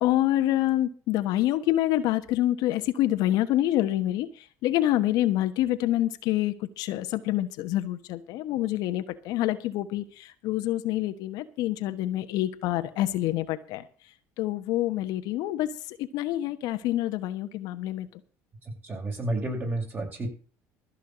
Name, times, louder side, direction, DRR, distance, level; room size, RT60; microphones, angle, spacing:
voice 1, 0.0-13.9 14.4-18.1, left 14 dB, 75° left, 9 dB, 1.2 m, -27 dB
voice 2, 18.6-20.3, right 2 dB, 30° right, 1 dB, 6.9 m, -31 dB
14.5 x 5.7 x 8.8 m, 0.38 s
supercardioid pair, 100°, 7 cm